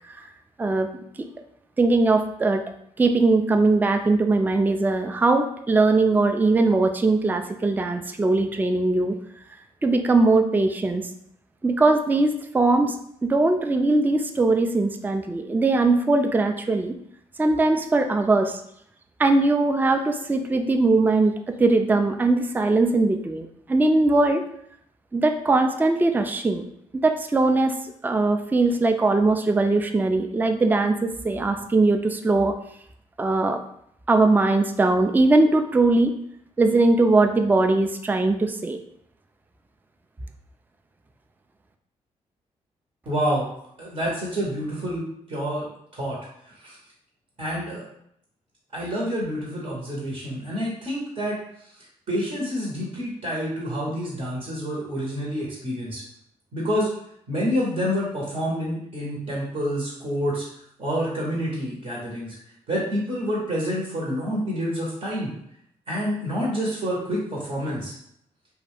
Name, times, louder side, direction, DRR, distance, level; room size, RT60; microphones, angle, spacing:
voice 1, 0.6-0.9 1.8-2.6 3.0-9.2 9.8-11.1 11.6-13.0 13.2-17.0 17.4-18.6 19.2-24.4 25.1-26.6 27.0-27.7 28.0-32.6 33.2-33.6 34.1-36.1 36.6-38.8, right 2 dB, 15° right, 6 dB, 0.3 m, -20 dB
voice 2, 43.1-43.5 43.8-45.7 45.9-46.2 46.4-46.8 47.4-47.9 48.7-51.4 52.1-56.0 56.5-56.9 57.3-60.5 60.8-62.4 62.7-65.3 65.9-67.9, equal, 55° right, -5 dB, 1.0 m, -28 dB
2.4 x 2.2 x 3.3 m, 0.71 s
supercardioid pair, 45°, 14 cm